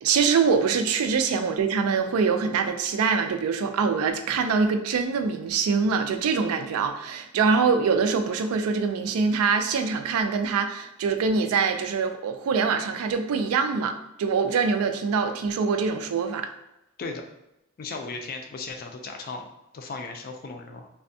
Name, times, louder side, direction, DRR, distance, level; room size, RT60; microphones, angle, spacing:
voice 1, 0.0-16.5, right 5 dB, 90° right, 7 dB, 0.3 m, -24 dB
voice 2, 17.8-19.5 19.7-20.9, left 3 dB, 45° left, 4 dB, 0.3 m, -36 dB
3.3 x 2.1 x 2.6 m, 0.88 s
head